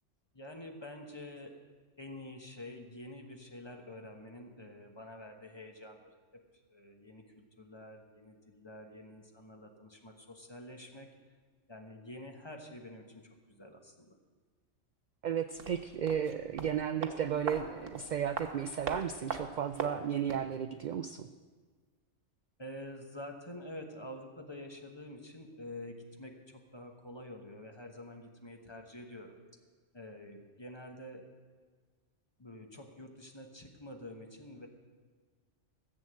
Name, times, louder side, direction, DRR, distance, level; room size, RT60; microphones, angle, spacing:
voice 1, 0.3-1.6 2.0-6.1 6.7-11.1 11.7-14.2 22.6-29.4 29.9-31.2 32.4-34.7, left 1 dB, 20° left, 3 dB, 1.2 m, -48 dB
voice 2, 15.2-21.2, right 8 dB, 65° right, 10 dB, 0.4 m, -34 dB
sound 1, 15.5-20.5 20.8-20.9, right 5 dB, 90° right, 1.5 m, -41 dB
14.5 x 7.6 x 7.7 m, 1.5 s
omnidirectional pair, 1.3 m